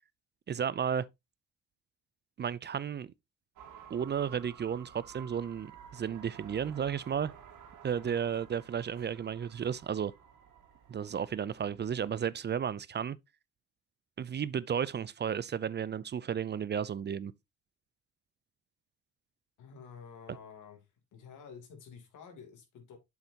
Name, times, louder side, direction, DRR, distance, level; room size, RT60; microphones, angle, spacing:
voice 1, 0.5-1.0 2.4-3.1 3.9-7.3 7.8-10.1 10.9-13.2 14.2-17.3, right 8 dB, 35° right, 0.5 m, -33 dB
sound 1, 3.5-12.2, right 8 dB, 80° right, 2.4 m, -53 dB
voice 2, 7.8-8.2 19.6-20.8 21.1-23.0, left 6 dB, 80° left, 3.1 m, -50 dB
7.9 x 7.1 x 2.9 m
cardioid pair, 90°, 30 cm